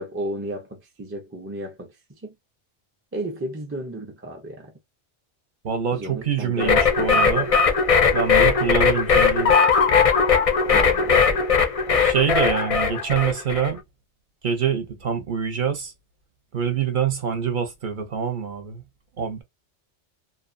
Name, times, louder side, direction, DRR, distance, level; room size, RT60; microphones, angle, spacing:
voice 1, 0.0-1.9 2.2-2.3 3.1-4.7 5.9-7.4 10.7-11.3, right 1 dB, 20° right, 0.3 m, -34 dB
voice 2, 5.6-7.5 8.1-9.5 12.0-13.8 14.4-15.9 16.5-18.8 19.2-19.4, right 7 dB, 50° right, 0.7 m, -25 dB
sound 1, 6.6-13.7, left 5 dB, 50° left, 0.4 m, -19 dB
2.6 x 2.2 x 2.5 m
omnidirectional pair, 1.2 m